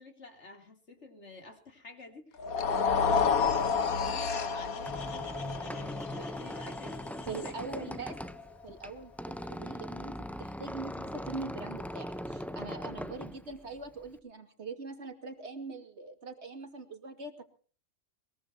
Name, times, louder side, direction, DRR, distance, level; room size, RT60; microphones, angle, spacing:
voice 1, 0.0-8.0 12.7-13.3, left 2 dB, 55° left, 5 dB, 3.7 m, -50 dB
sound 1, 2.4-8.6, left 5 dB, 90° left, 1.8 m, -31 dB
Squeak, 4.5-14.2, equal, ahead, 0.7 m, -41 dB
voice 2, 7.3-8.1 8.6-17.4, right 3 dB, 50° right, 6 dB, 2.7 m, -42 dB
22.0 x 22.0 x 2.9 m, 0.42 s
omnidirectional pair, 1.5 m